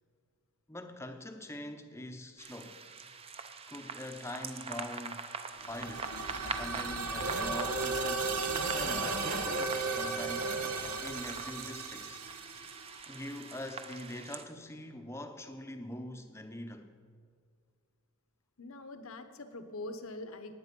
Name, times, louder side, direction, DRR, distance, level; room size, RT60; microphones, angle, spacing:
voice 1, 0.7-2.8 3.7-5.3 5.7-6.1 6.4-10.5 11.0-12.2 13.1-16.9, left 1 dB, 10° left, 0.7 m, -43 dB
sound 1, 2.4-14.4, right 4 dB, 25° right, 0.6 m, -44 dB
sound 2, 5.6-13.4, right 4 dB, 90° right, 1.2 m, -37 dB
Race car auto racing / Accelerating revving vroom, 6.0-11.6, right 2 dB, 60° right, 1.3 m, -37 dB
voice 2, 18.6-20.6, left 2 dB, 70° left, 1.0 m, -43 dB
18.5 x 8.7 x 5.3 m
head